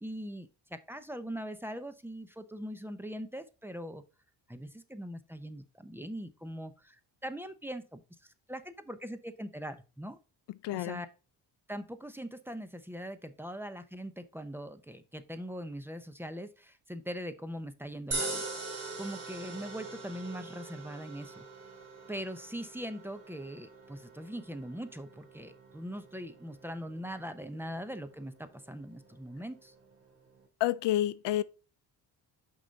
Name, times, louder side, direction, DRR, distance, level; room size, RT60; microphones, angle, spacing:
voice 1, 0.0-4.0 4.5-10.2 10.7-11.1 11.7-18.4 19.0-21.4 22.1-29.7, equal, 5° right, 0.8 m, -41 dB
voice 2, 10.6-11.0 30.6-31.4, left 13 dB, 85° left, 0.6 m, -29 dB
sound 1, 18.1-30.4, right 2 dB, 35° right, 3.0 m, -43 dB
6.0 x 5.6 x 4.0 m
cardioid pair, 95°, 41 cm